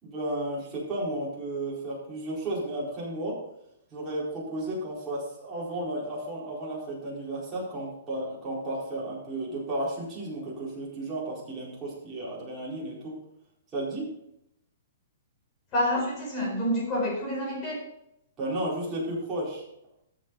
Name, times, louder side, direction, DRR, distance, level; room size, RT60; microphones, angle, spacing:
voice 1, 0.0-3.4 3.9-13.2 13.7-14.1 18.4-19.6, right 1 dB, 15° right, -7 dB, 4.6 m, -33 dB
voice 2, 15.7-17.8, equal, 25° left, -1 dB, 4.5 m, -28 dB
14.0 x 7.8 x 4.1 m, 0.80 s
hypercardioid pair, 170°, 0 cm